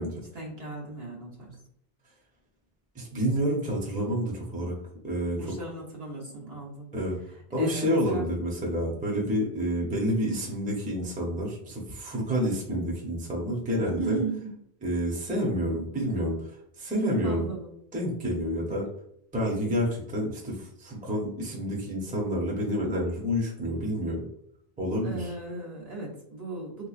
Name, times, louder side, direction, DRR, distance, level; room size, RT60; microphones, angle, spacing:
voice 1, 0.0-1.6 5.3-6.9 7.6-8.2 14.0-14.5 17.2-17.7 25.0-26.9, right 3 dB, 70° right, -2 dB, 1.3 m, -36 dB
voice 2, 2.9-4.8 5.0-5.5 6.9-7.2 7.5-14.2 14.8-17.5 17.9-18.9 19.3-24.3 24.8-25.3, equal, 10° right, -3 dB, 0.6 m, -29 dB
3.5 x 3.0 x 2.4 m, 0.72 s
omnidirectional pair, 1.1 m